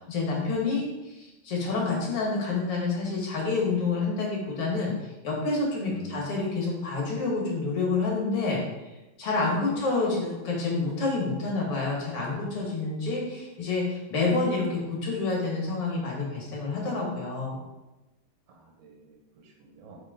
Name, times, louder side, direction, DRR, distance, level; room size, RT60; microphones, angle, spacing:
voice 1, 0.0-8.6 9.2-17.6, left 3 dB, 55° left, -2 dB, 2.4 m, -28 dB
voice 2, 5.9-6.3 9.7-9.8 18.5-20.0, right 5 dB, 75° right, 0 dB, 2.6 m, -47 dB
8.0 x 5.0 x 3.8 m, 1.0 s
omnidirectional pair, 3.4 m